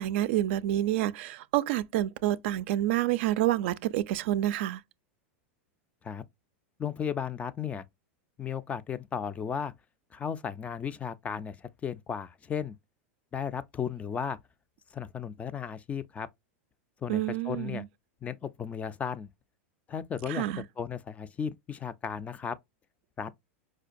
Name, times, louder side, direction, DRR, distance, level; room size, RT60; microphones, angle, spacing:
voice 1, 0.0-4.8 17.1-17.9 20.3-20.6, right 14 dB, 65° right, 0.3 m, -28 dB
voice 2, 6.8-7.9 8.4-9.7 10.1-12.7 13.3-14.4 14.9-16.3 17.0-17.8 18.2-19.3 19.9-20.5 20.8-22.6 23.2-23.3, left 7 dB, 20° left, 0.3 m, -35 dB
5.0 x 2.2 x 2.5 m
supercardioid pair, 125°, 7 cm